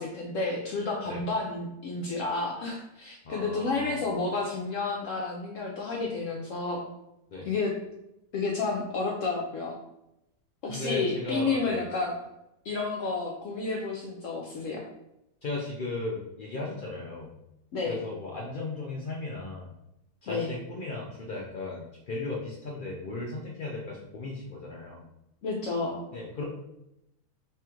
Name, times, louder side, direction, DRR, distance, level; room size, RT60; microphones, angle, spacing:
voice 1, 0.0-6.8 7.4-7.7 8.3-9.7 10.6-12.1 12.6-14.8 17.7-18.0 20.3-20.6 25.4-26.0, left 3 dB, 65° left, -1 dB, 0.8 m, -31 dB
voice 2, 3.2-4.0 7.3-7.5 10.6-11.9 15.4-17.3 17.9-19.7 20.2-25.0 26.1-26.4, left 2 dB, 85° left, -3 dB, 0.4 m, -36 dB
3.3 x 2.4 x 4.4 m, 0.86 s
omnidirectional pair, 1.7 m